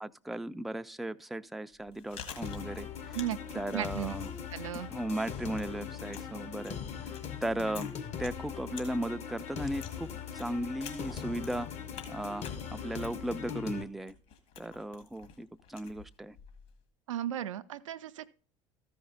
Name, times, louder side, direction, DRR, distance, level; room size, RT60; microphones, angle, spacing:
voice 1, 0.0-3.2 3.5-4.4 4.9-7.1 7.4-7.9 8.2-11.7 12.1-14.1 14.6-16.4, right 1 dB, ahead, 0.3 m, -36 dB
Chewing mastication, 1.7-16.8, left 7 dB, 60° left, 1.8 m, -51 dB
sound 1, 2.4-13.8, left 8 dB, 45° left, 0.8 m, -40 dB
voice 2, 3.7-4.1 4.5-4.9 17.1-18.3, right 11 dB, 80° right, 0.5 m, -35 dB
13.5 x 5.1 x 3.9 m
hypercardioid pair, 65°, 16 cm